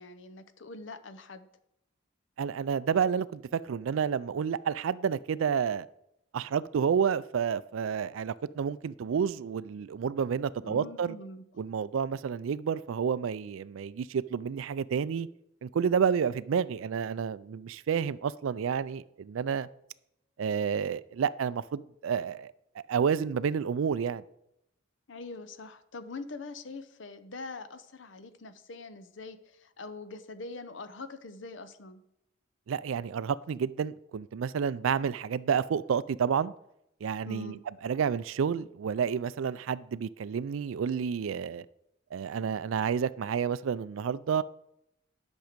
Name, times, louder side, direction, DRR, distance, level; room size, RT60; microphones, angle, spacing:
voice 1, 0.0-1.5 10.6-11.4 25.1-32.0 37.3-37.6, left 3 dB, 70° left, 0.7 m, -43 dB
voice 2, 2.4-5.9 6.3-11.2 11.6-15.3 15.6-19.7 20.4-22.5 22.9-24.2 32.7-36.5 37.0-37.5 37.8-41.6 42.1-44.4, right 7 dB, 80° right, 0.4 m, -30 dB
10.5 x 6.3 x 5.1 m
head